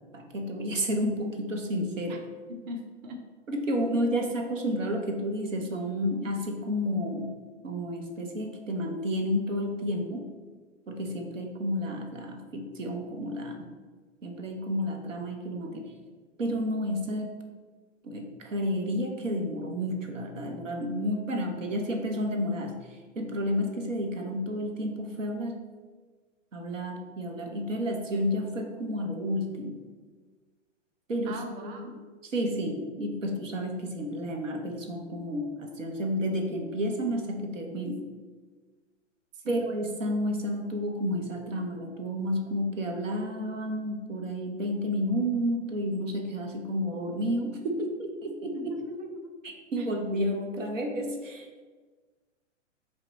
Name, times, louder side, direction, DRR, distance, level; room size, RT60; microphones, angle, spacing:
voice 1, 0.1-2.2 3.5-7.3 7.6-10.3 10.9-13.7 14.2-15.9 16.4-17.3 18.0-22.8 23.2-25.6 26.5-29.8 31.1-31.9 32.3-38.0 39.5-48.7 49.4-51.6, equal, 90° right, 3 dB, 0.9 m, -31 dB
voice 2, 2.5-3.2 31.3-31.9 39.3-39.6 48.5-49.3 49.8-49.9, equal, 35° right, 3 dB, 0.6 m, -41 dB
5.6 x 2.2 x 4.0 m, 1.4 s
hypercardioid pair, 120°, 37 cm